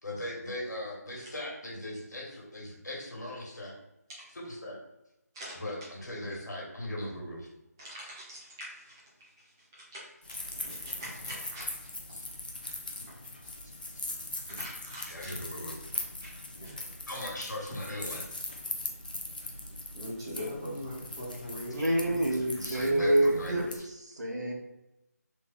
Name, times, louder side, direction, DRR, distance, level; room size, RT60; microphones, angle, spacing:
voice 1, 0.0-3.7 4.3-4.8 5.6-7.5 12.1-12.3 15.1-15.8 17.1-18.3 22.3-23.8, left 1 dB, 80° left, -2 dB, 1.3 m, -39 dB
voice 2, 7.8-9.0 9.4-10.0 10.3-11.7 14.5-15.3 16.2-16.8 19.9-22.7, equal, 15° right, -8 dB, 0.8 m, -42 dB
sound 1, 10.2-23.8, left 2 dB, 30° left, 0.3 m, -41 dB
voice 3, 21.7-23.6 24.2-24.5, right 1 dB, 85° right, -1 dB, 1.0 m, -26 dB
3.2 x 2.3 x 3.6 m, 0.91 s
figure-of-eight pair, 170°, 9 cm